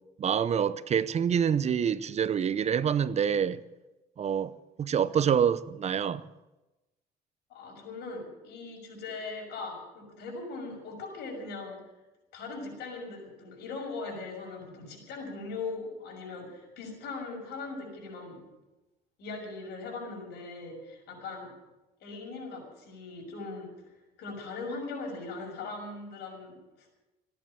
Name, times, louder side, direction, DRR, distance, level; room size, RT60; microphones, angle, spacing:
voice 1, 0.2-3.6 4.2-4.5 4.8-6.2, right 8 dB, 40° right, 0.7 m, -26 dB
voice 2, 7.5-11.8 12.3-18.5 19.2-21.5 22.0-27.0, left 3 dB, 75° left, 6.2 m, -40 dB
16.0 x 10.5 x 8.8 m
cardioid pair, 110°, 17 cm